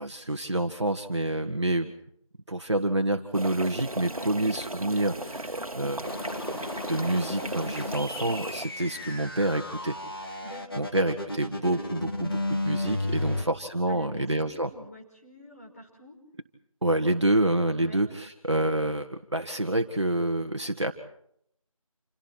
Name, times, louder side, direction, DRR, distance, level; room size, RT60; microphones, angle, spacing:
voice 1, 0.0-1.9 2.5-6.0 6.5-6.6 6.9-10.4 10.7-14.7 16.8-20.9, right 1 dB, 55° right, 5 dB, 1.7 m, -28 dB
sound 1, 3.3-8.7, right 1 dB, 80° right, 1.6 m, -36 dB
sound 2, 6.0-13.4, left 2 dB, 40° left, 2.7 m, -33 dB
voice 2, 10.4-10.8 13.0-13.5 13.9-16.2 17.8-18.0, left 1 dB, 25° left, 0 dB, 5.3 m, -46 dB
29.5 x 28.0 x 4.5 m, 0.71 s
figure-of-eight pair, 170°, 18 cm